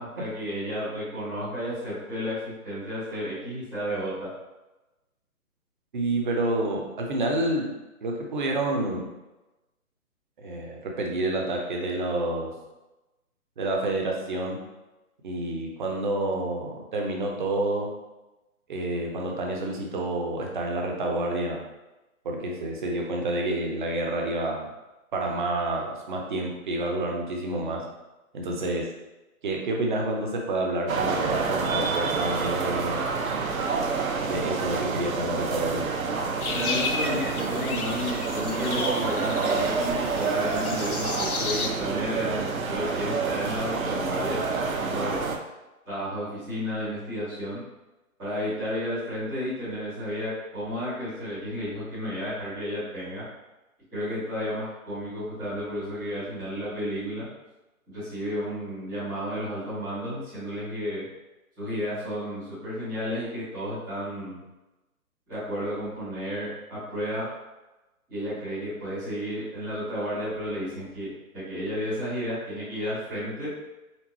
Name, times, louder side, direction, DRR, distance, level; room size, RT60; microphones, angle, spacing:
voice 1, 0.0-4.3 36.5-45.3 45.8-47.6 48.2-53.2 53.9-57.3 57.9-61.0 61.6-64.4 65.3-67.3 68.1-73.5, equal, ahead, -21 dB, 0.5 m, -32 dB
voice 2, 5.9-7.7 8.0-9.1 10.4-12.5 13.6-14.6 15.2-17.9 18.7-21.7 22.2-24.7 25.1-27.8 28.3-28.9 29.4-33.0 34.2-35.8, right 2 dB, 35° right, 0 dB, 0.7 m, -28 dB
sound 1, 30.9-45.4, right 4 dB, 65° right, 0.7 m, -28 dB
sound 2, 36.4-41.7, left 4 dB, 85° left, 0.7 m, -33 dB
4.4 x 3.7 x 3.0 m, 1.0 s
figure-of-eight pair, 140°, 43 cm